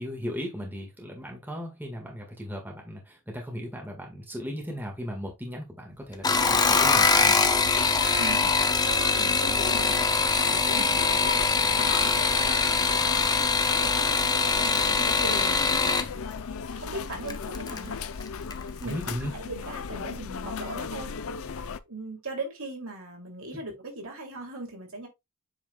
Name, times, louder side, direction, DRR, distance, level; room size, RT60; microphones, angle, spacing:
voice 1, 0.0-7.4 10.8-10.9 18.8-19.3, equal, 10° right, 1.7 m, -36 dB
sound 1, 6.1-16.1 17.3-17.8 18.2-18.6 18.9-19.0, left 4 dB, 15° left, 0.6 m, -23 dB
sound 2, 6.3-21.8, left 5 dB, 70° left, 0.5 m, -36 dB
voice 2, 8.2-8.5 8.8-10.2 10.6-11.9 12.6-13.4 13.7-16.2 16.7-18.0 18.8-21.2 21.6-25.1, right 2 dB, 65° right, 2.8 m, -40 dB
7.9 x 5.1 x 2.3 m
head